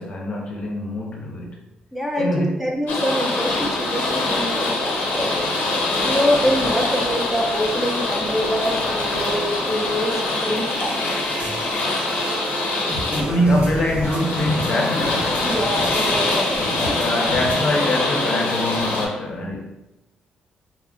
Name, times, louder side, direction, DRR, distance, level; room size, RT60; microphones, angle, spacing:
voice 1, 0.0-1.6 2.2-2.6 13.1-15.4 16.8-19.7, left 1 dB, 40° left, 0 dB, 0.6 m, -24 dB
voice 2, 1.9-5.5 6.0-11.3 15.4-17.3, equal, 5° right, -1 dB, 0.5 m, -25 dB
sound 1, 2.9-19.1, left 2 dB, 85° left, 0.6 m, -24 dB
sound 2, 10.9-17.7, right 1 dB, 70° right, 1.1 m, -31 dB
2.3 x 2.1 x 3.6 m, 0.93 s
cardioid pair, 105°, 3 cm